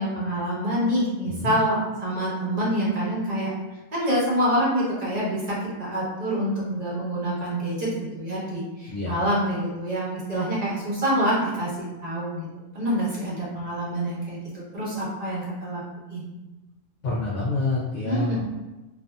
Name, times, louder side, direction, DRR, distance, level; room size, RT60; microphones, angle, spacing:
voice 1, 0.0-3.5 3.9-7.9 8.2-12.5 12.7-15.8 16.1-16.2 18.0-18.4, equal, 35° right, -7 dB, 0.9 m, -26 dB
voice 2, 1.3-1.6 8.9-9.1 17.0-18.4, left 2 dB, 65° left, -7 dB, 0.9 m, -27 dB
2.6 x 2.6 x 2.3 m, 1.1 s
omnidirectional pair, 1.5 m